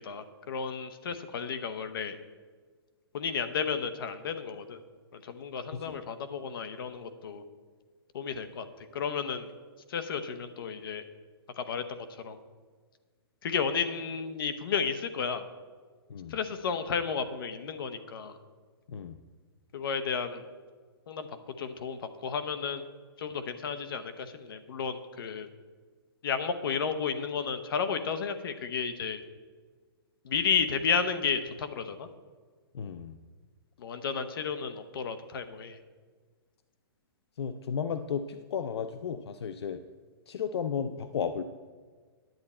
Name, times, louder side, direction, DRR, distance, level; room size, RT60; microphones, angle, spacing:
voice 1, 0.0-2.2 3.1-4.8 5.1-7.4 8.1-8.7 8.9-9.5 9.9-11.0 11.6-12.4 13.4-15.5 16.3-18.4 19.7-20.4 21.1-21.3 21.6-22.8 23.2-25.5 26.2-29.2 30.2-32.1 33.8-35.8, left 6 dB, 60° left, 10 dB, 0.9 m, -32 dB
voice 2, 32.7-33.2 37.4-39.8 40.3-41.4, left 7 dB, 85° left, 10 dB, 0.5 m, -34 dB
10.5 x 8.5 x 4.3 m, 1.5 s
hypercardioid pair, 165°, 13 cm